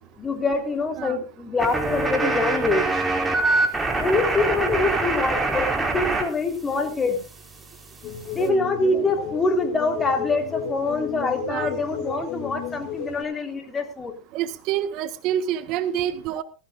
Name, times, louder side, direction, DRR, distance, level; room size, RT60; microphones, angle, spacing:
voice 1, 0.2-3.0 4.0-7.2 8.3-14.1, left 3 dB, 20° left, 5 dB, 4.0 m, -25 dB
sound 1, 1.6-6.2 6.5-8.5, right 3 dB, 15° right, 4.6 m, -25 dB
sound 2, 8.0-13.2, left 6 dB, 45° left, 6.1 m, -33 dB
voice 2, 14.3-16.4, right 10 dB, 55° right, 11 dB, 1.4 m, -28 dB
19.5 x 15.5 x 2.6 m, 0.33 s
hypercardioid pair, 110°, 0 cm